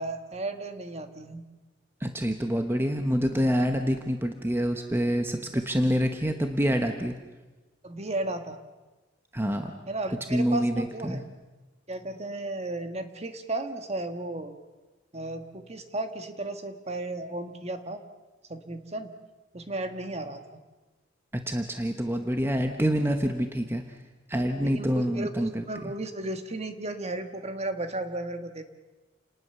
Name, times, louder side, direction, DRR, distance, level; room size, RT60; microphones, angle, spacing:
voice 1, 0.0-1.4 7.8-8.6 9.9-11.2 11.9-14.5 15.1-18.0 18.5-19.1 19.5-20.6 24.6-28.6, right 2 dB, 35° right, 7 dB, 1.6 m, -34 dB
voice 2, 2.0-7.1 9.3-9.7 10.3-11.2 21.3-23.8 24.3-25.9, equal, 10° right, 5 dB, 1.1 m, -27 dB
29.0 x 19.5 x 6.9 m, 1.2 s
head